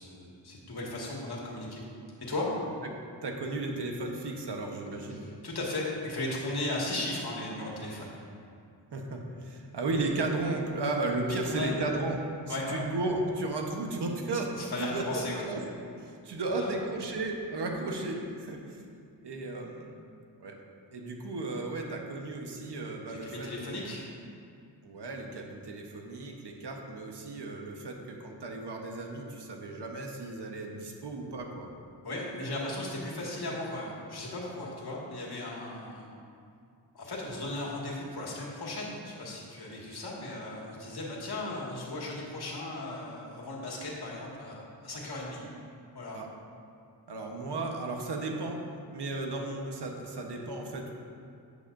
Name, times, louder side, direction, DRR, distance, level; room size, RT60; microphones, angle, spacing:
voice 1, 0.0-1.8 2.2-2.5 5.1-8.2 11.5-11.7 12.5-12.8 14.6-15.4 16.6-16.7 23.1-24.0 32.0-36.1 36.9-45.4 45.9-46.2, left 2 dB, 60° left, -4 dB, 2.1 m, -36 dB
voice 2, 3.2-5.2 8.9-12.2 12.5-14.5 14.8-15.6 16.0-18.8 19.2-19.9 20.4-20.6 20.9-23.8 24.8-31.7 46.1-46.3 47.1-48.6 48.9-50.9, right 2 dB, 70° right, 1 dB, 1.2 m, -34 dB
11.5 x 8.3 x 2.6 m, 2.4 s
cardioid pair, 75°, 43 cm